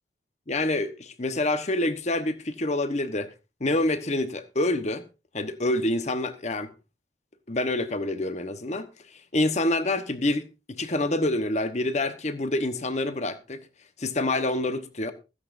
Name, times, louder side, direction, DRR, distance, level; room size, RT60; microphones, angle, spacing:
voice 1, 0.5-3.3 3.6-5.0 5.3-6.7 7.5-8.9 9.1-13.6 14.0-15.1, left 2 dB, 40° left, 1.1 m, -27 dB
16.5 x 14.5 x 2.6 m
head